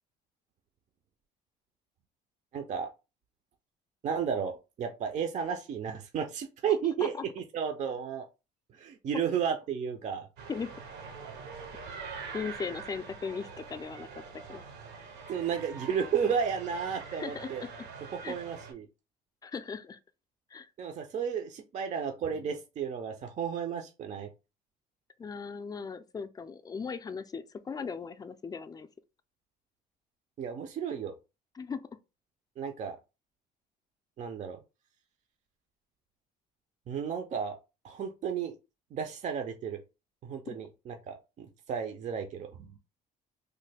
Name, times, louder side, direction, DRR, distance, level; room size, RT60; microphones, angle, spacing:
voice 1, 2.5-2.9 4.0-8.3 8.7-10.3 15.3-17.6 18.1-18.9 20.8-24.3 30.4-31.1 32.6-33.0 34.2-34.6 36.9-37.6 37.8-38.6 38.9-39.8 40.2-42.7, right 7 dB, 45° right, 0.4 m, -33 dB
voice 2, 6.8-7.2 10.5-10.7 12.3-14.6 17.1-17.7 18.2-18.4 19.4-20.0 20.5-20.7 25.2-28.9 31.5-31.8, left 5 dB, 20° left, 0.3 m, -38 dB
sound 1, 10.4-18.7, right 5 dB, 80° right, 0.8 m, -44 dB
3.1 x 2.1 x 3.3 m
cardioid pair, 110°, 17 cm